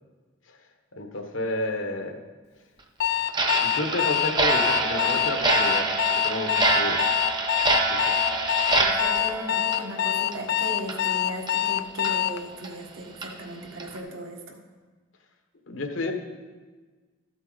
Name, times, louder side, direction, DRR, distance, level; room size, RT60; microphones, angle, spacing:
voice 1, 0.9-2.2 3.5-7.0 7.9-8.1 15.7-16.1, left 2 dB, 75° left, 5 dB, 1.2 m, -31 dB
Alarm, 3.0-12.4, left 12 dB, 50° left, 0.4 m, -25 dB
Clock, 3.3-10.5 10.8-11.0 11.5-11.6 12.0-12.1 12.6-12.7 13.2-13.3 13.8-14.0, right 3 dB, 20° right, 0.8 m, -26 dB
voice 2, 8.7-14.6, right 1 dB, 80° right, 1 dB, 1.6 m, -37 dB
13.5 x 8.0 x 4.0 m, 1.4 s
head